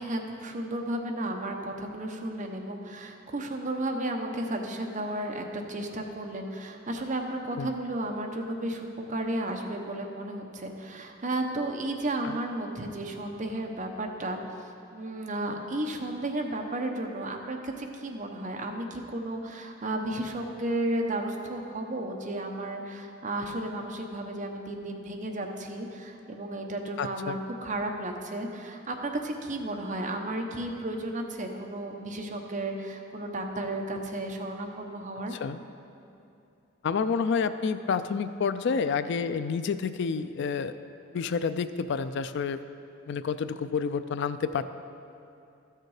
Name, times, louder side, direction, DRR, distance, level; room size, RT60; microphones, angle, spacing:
voice 1, 0.0-14.4 14.9-35.4, right 1 dB, 40° right, 2 dB, 0.9 m, -33 dB
voice 2, 27.0-27.4 35.3-35.6 36.8-40.7 41.1-42.6 43.1-44.6, left 5 dB, 60° left, 12 dB, 0.4 m, -29 dB
13.5 x 6.6 x 4.8 m, 2.6 s
head